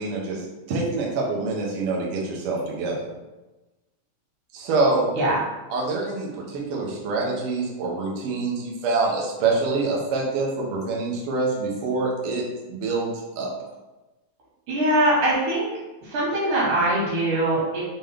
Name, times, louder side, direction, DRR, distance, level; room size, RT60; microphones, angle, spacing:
voice 1, 0.0-3.1 4.5-5.1 5.7-12.4 12.7-13.5, right 3 dB, 65° right, -3 dB, 1.5 m, -26 dB
voice 2, 14.7-15.7 16.0-17.8, right 1 dB, 90° right, -6 dB, 3.1 m, -22 dB
5.6 x 2.8 x 3.3 m, 1.1 s
omnidirectional pair, 3.5 m